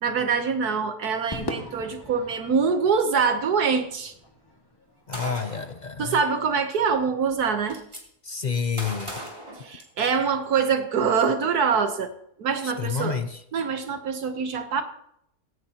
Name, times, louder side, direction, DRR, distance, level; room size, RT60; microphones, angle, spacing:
voice 1, 0.0-4.1 6.0-7.8 9.6-13.2 13.5-14.8, right 5 dB, 75° right, 7 dB, 1.5 m, -24 dB
Crowd / Fireworks, 1.3-5.8, left 1 dB, 15° left, 2.0 m, -40 dB
voice 2, 5.1-6.2 8.2-9.2 12.6-13.4, left 6 dB, 50° left, 8 dB, 0.5 m, -29 dB
Gunshot gunfire, 5.1-5.8 6.9-7.0 7.3-8.0 8.8-10.3, equal, 20° right, 3.3 m, -37 dB
18.0 x 17.0 x 2.9 m, 0.75 s
omnidirectional pair, 1.7 m